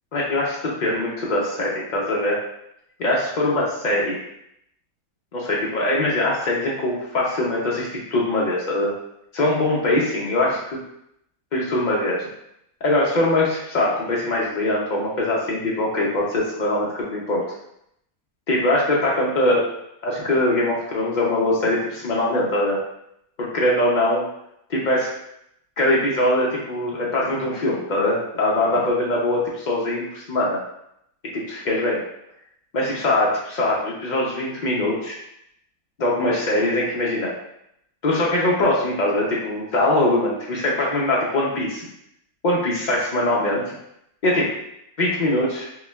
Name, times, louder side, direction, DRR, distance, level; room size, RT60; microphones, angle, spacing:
voice 1, 0.1-2.4 3.0-4.2 5.3-8.9 9.3-10.8 11.5-12.3 12.8-17.6 18.5-19.6 20.0-22.8 23.4-24.3 24.7-25.1 25.8-30.6 31.3-32.0 32.7-35.2 36.0-37.3 38.0-41.8 42.4-43.7 44.2-44.5 45.0-45.7, left 1 dB, 90° left, -4 dB, 0.4 m, -22 dB
5.4 x 2.2 x 2.2 m, 0.77 s
omnidirectional pair, 1.6 m